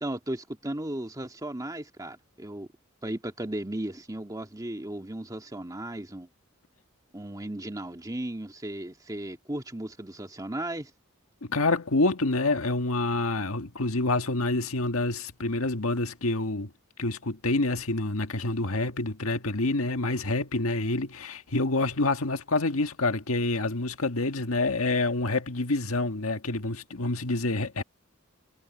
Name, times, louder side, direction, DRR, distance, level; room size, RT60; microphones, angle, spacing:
voice 1, 0.0-2.7 3.0-6.3 7.1-10.9, right 1 dB, 15° right, 2.1 m, -35 dB
voice 2, 11.5-16.7 17.0-27.8, left 2 dB, 85° left, 1.7 m, -27 dB
head